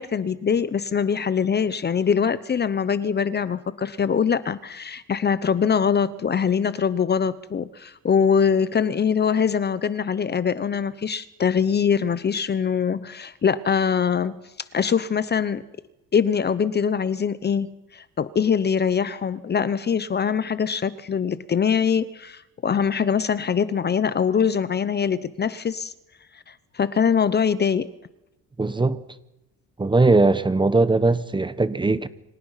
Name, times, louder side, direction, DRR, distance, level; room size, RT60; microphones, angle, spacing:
voice 1, 0.0-14.5 14.7-15.6 16.1-25.9 26.7-27.9, left 7 dB, 30° left, 0.8 m, -23 dB
voice 2, 28.6-29.0 29.8-32.1, right 3 dB, 15° right, 1.0 m, -20 dB
28.5 x 25.5 x 5.8 m
cardioid pair, 150°, 33 cm